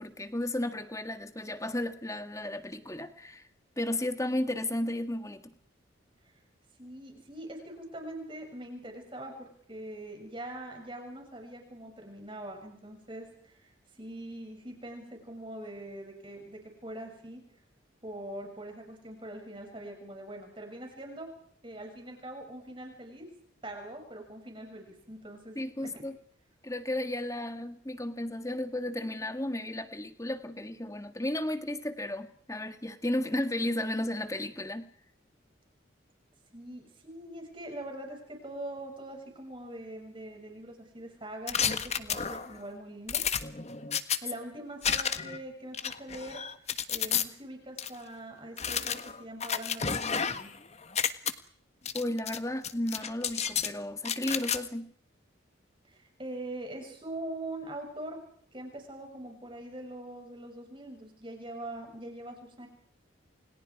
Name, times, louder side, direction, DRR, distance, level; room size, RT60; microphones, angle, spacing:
voice 1, 0.0-3.4 3.8-5.5 25.5-26.2 26.6-34.9 51.9-54.9, left 1 dB, 15° left, 9 dB, 1.6 m, -33 dB
voice 2, 6.8-17.4 18.0-21.3 21.6-23.3 23.6-25.9 36.5-43.2 44.2-50.5 55.8-58.2 58.5-62.7, right 1 dB, 25° right, 3 dB, 6.9 m, -43 dB
sound 1, 41.5-42.6 43.1-44.2 44.8-45.4 45.7-47.2 47.8-47.9 48.6-50.6 50.8-51.3 51.9-52.4 52.6-53.7 54.0-54.6, left 7 dB, 35° left, 1.4 m, -31 dB
29.5 x 28.5 x 4.8 m, 0.63 s
head